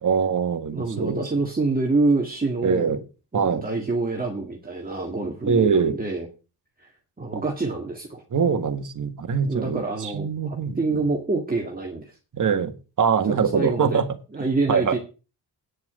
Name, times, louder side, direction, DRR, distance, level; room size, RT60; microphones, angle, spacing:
voice 1, 0.0-1.2 2.6-3.0 3.3-3.7 5.4-6.0 7.3-7.4 8.3-11.0 12.3-14.1 14.7-15.0, right 6 dB, 50° right, 7 dB, 1.7 m, -23 dB
voice 2, 0.7-2.9 3.3-6.3 6.8-6.9 7.2-8.2 9.4-12.2 13.3-14.0 14.3-15.0, right 3 dB, 20° right, 0 dB, 2.0 m, -26 dB
9.7 x 6.0 x 7.5 m, 0.33 s
wide cardioid pair, 120°, 40 cm